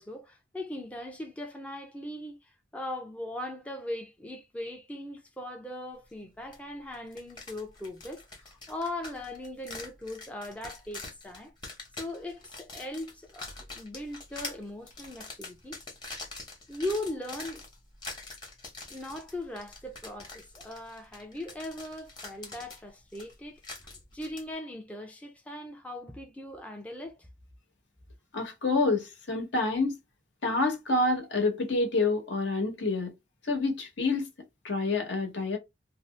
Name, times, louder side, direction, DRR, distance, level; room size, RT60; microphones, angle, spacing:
voice 1, 0.0-11.5 12.0-13.5 13.8-15.8 16.7-17.6 18.9-27.3, left 1 dB, 10° left, 0.4 m, -39 dB
sound 1, 6.5-6.6 6.9-24.4, left 3 dB, 25° left, 0.9 m, -45 dB
voice 2, 28.3-30.0 30.4-33.1 33.4-34.3 34.6-35.6, left 3 dB, 75° left, 1.0 m, -27 dB
2.6 x 2.0 x 3.2 m
head